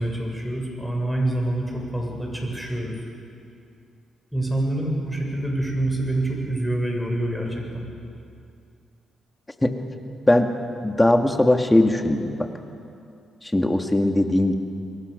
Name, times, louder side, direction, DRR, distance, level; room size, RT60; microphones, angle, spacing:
voice 1, 0.0-3.0 4.3-7.8, right 1 dB, 5° right, 0 dB, 7.6 m, -26 dB
voice 2, 10.8-12.5 13.5-14.6, left 1 dB, 15° left, 4 dB, 2.2 m, -19 dB
28.0 x 22.0 x 6.9 m, 2.5 s
cardioid pair, 80°, 0 cm